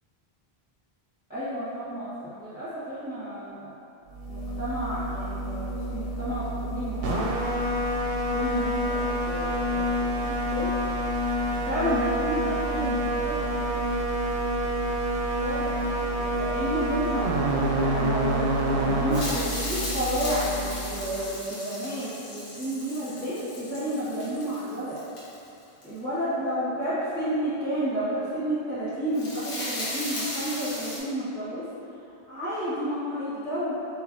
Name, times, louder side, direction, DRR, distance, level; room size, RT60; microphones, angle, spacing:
voice 1, 1.3-2.1 2.4-3.7 4.3-7.5 8.3-10.7 11.5-13.7 15.4-15.7 16.2-17.3 17.7-25.0 25.8-31.6 32.3-33.7, equal, 10° right, -16 dB, 1.2 m, -31 dB
sound 1, 4.1-21.3, right 1 dB, 70° right, 0.7 m, -28 dB
sound 2, 19.1-25.8 28.9-31.0, left 1 dB, 85° left, 1.3 m, -36 dB
5.1 x 2.9 x 2.6 m, 2.7 s
omnidirectional pair, 1.0 m